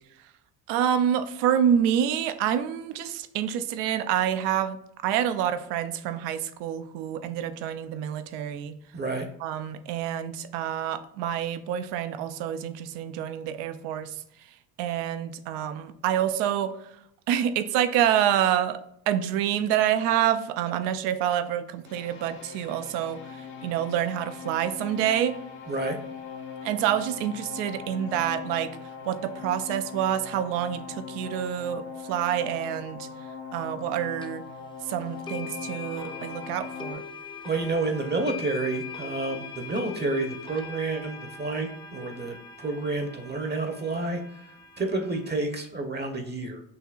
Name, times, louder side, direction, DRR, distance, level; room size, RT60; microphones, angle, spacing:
voice 1, 0.7-8.8 9.4-14.2 14.8-25.4 26.6-28.7 29.0-33.1 33.5-34.4 34.8-37.0, right 10 dB, 85° right, 11 dB, 0.5 m, -27 dB
voice 2, 8.9-9.3 25.7-26.0 37.4-44.4 44.8-46.6, right 3 dB, 25° right, 5 dB, 0.7 m, -29 dB
sound 1, 21.8-36.9, left 6 dB, 80° left, 1.1 m, -40 dB
sound 2, 34.2-34.3 35.3-45.3, left 5 dB, 10° left, 0.6 m, -41 dB
5.9 x 2.8 x 2.3 m, 0.76 s
supercardioid pair, 70°, 41 cm